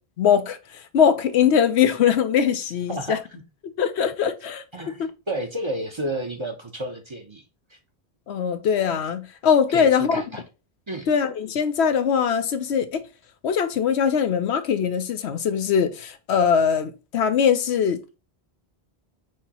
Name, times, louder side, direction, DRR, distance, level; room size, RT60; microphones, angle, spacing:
voice 1, 0.2-3.2 3.8-4.6 5.0-5.1 8.3-10.2 11.1-13.0 13.4-18.0, left 7 dB, 75° left, 0.9 m, -21 dB
voice 2, 2.9-3.4 4.7-7.4 7.7-7.8 9.7-10.4 10.9-11.1, right 1 dB, 30° right, 0.7 m, -31 dB
6.1 x 2.8 x 2.9 m
omnidirectional pair, 1.1 m